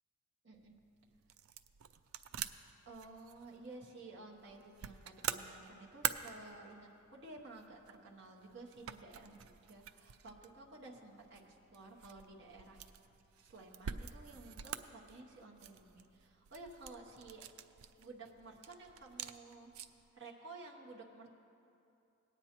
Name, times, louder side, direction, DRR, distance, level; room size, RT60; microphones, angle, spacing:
voice 1, 0.4-0.7 2.9-12.8 13.4-17.6 18.0-19.7 20.1-21.3, right 2 dB, 55° right, -2 dB, 1.0 m, -53 dB
sound 1, 0.5-20.1, right 9 dB, 80° right, 0.4 m, -47 dB
18.0 x 9.2 x 2.9 m, 2.8 s
head